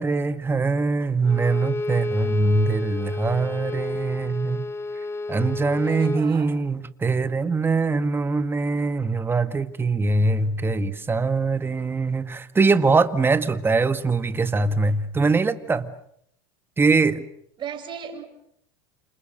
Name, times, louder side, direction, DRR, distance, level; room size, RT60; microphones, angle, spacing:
voice 1, 0.0-4.7 5.3-15.9 16.8-17.2, right 3 dB, 20° right, 1.8 m, -22 dB
Bowed string instrument, 1.2-6.3, left 2 dB, 20° left, 2.3 m, -31 dB
voice 2, 5.8-6.6 17.6-18.3, right 8 dB, 40° right, 5.9 m, -36 dB
29.5 x 28.0 x 6.7 m
supercardioid pair, 100°, 12 cm